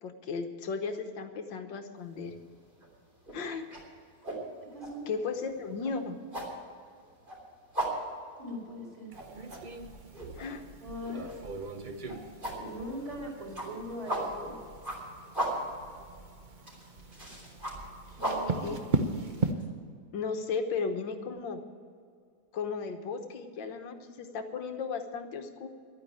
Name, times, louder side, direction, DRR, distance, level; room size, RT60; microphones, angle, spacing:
voice 1, 0.0-2.4 3.3-3.7 5.1-6.2 10.4-10.6 18.6-18.8 20.1-21.6 22.5-25.7, left 5 dB, 65° left, 7 dB, 1.7 m, -35 dB
sound 1, 2.1-2.4 2.7-19.7, right 1 dB, 25° right, 3.6 m, -38 dB
voice 2, 4.7-5.1 8.4-9.1 10.8-11.3 12.5-14.6 18.1-18.8, equal, 15° left, -7 dB, 4.0 m, -40 dB
sound 2, 9.1-19.5, right 3 dB, 50° right, 0.5 m, -38 dB
12.0 x 9.5 x 8.8 m, 2.2 s
omnidirectional pair, 2.2 m